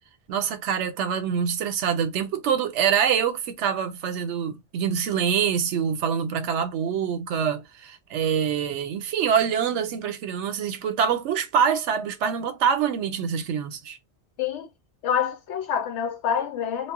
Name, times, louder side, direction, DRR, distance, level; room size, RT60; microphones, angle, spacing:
voice 1, 0.3-14.0, right 7 dB, 85° right, 0.9 m, -25 dB
voice 2, 14.4-14.7 15.0-16.9, left 8 dB, 80° left, 0.9 m, -27 dB
2.3 x 2.0 x 3.4 m
omnidirectional pair, 1.2 m